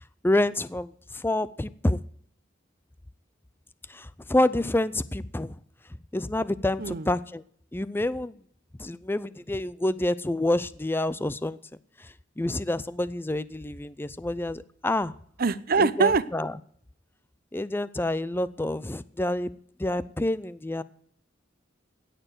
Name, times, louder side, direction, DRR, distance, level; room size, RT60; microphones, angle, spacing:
voice 1, 0.2-2.0 3.9-5.6 6.1-7.4 7.7-8.4 8.8-11.6 12.0-15.1 15.8-16.5 17.5-19.5 19.8-20.8, left 1 dB, 10° left, 17 dB, 0.5 m, -28 dB
voice 2, 15.4-16.2, right 4 dB, 50° right, 16 dB, 0.7 m, -23 dB
16.5 x 6.8 x 7.8 m, 0.62 s
head